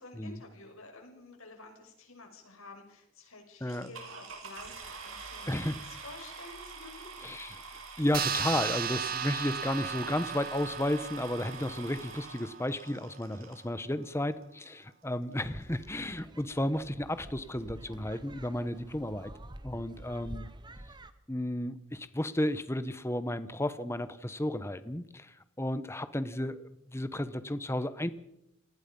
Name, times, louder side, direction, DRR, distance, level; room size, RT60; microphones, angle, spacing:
voice 1, 0.0-5.6 5.8-7.1, left 3 dB, 80° left, 4 dB, 6.1 m, -51 dB
sound 1, 3.7-13.6 14.4-14.5 15.0-15.1 15.3-15.6, right 4 dB, 75° right, 6.2 m, -46 dB
voice 2, 7.2-19.3 19.6-20.5 21.3-26.6 26.9-28.1, left 1 dB, 10° left, 13 dB, 1.1 m, -33 dB
sound 2, 8.1-13.0, right 8 dB, 45° right, 1.2 m, -36 dB
sound 3, 15.4-21.1, right 1 dB, 20° right, 1.1 m, -48 dB
28.0 x 19.5 x 5.5 m, 0.82 s
head